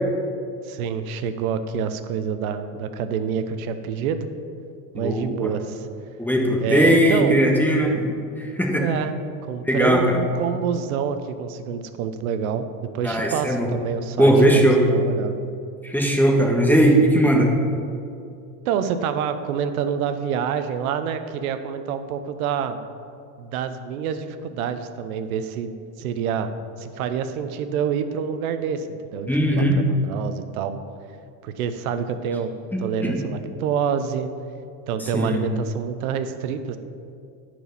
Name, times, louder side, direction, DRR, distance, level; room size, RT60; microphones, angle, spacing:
voice 1, 0.6-4.3 4.9-5.9 6.6-7.3 8.8-9.2 9.5-12.7 12.9-14.6 14.9-15.4 18.7-22.8 23.4-26.5 26.8-30.7 31.4-32.5 32.8-34.3 34.9-36.8, right 7 dB, 90° right, 10 dB, 0.8 m, -27 dB
voice 2, 4.9-5.5 6.2-8.1 8.4-8.9 9.7-10.0 13.0-13.7 14.2-14.8 15.8-17.5 29.3-29.7 32.7-33.2 35.0-35.4, right 1 dB, 5° left, 0 dB, 1.4 m, -19 dB
10.0 x 4.7 x 7.0 m, 2.4 s
supercardioid pair, 110°, 42 cm